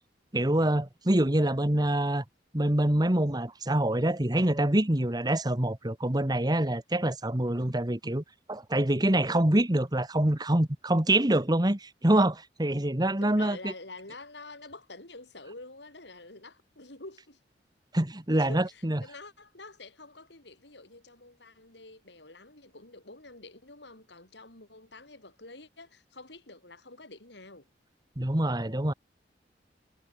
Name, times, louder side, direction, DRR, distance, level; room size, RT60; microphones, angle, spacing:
voice 1, 0.3-2.2 2.5-8.2 8.5-13.7 17.9-19.0 28.2-28.9, right 1 dB, 25° right, 1.6 m, -25 dB
voice 2, 13.2-17.4 18.4-27.7, left 2 dB, 70° left, 6.0 m, -48 dB
head